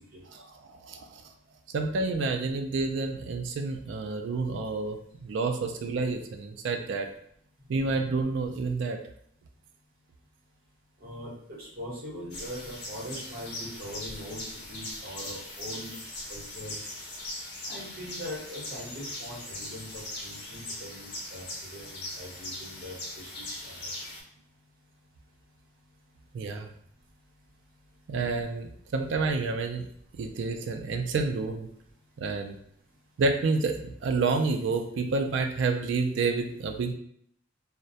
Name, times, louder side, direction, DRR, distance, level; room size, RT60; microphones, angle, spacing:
voice 1, 0.7-1.2 1.7-7.1 7.7-9.0 26.3-26.7 28.1-29.8 30.2-31.7 32.2-32.6 33.2-36.9, right 3 dB, 70° right, 6 dB, 0.3 m, -29 dB
voice 2, 11.0-14.4 14.7-16.0 16.3-16.7 17.7-21.4 21.7-23.9, equal, 50° right, -7 dB, 1.1 m, -41 dB
sound 1, 12.3-24.2, left 1 dB, 60° left, 0.7 m, -40 dB
2.2 x 2.1 x 2.7 m, 0.66 s
head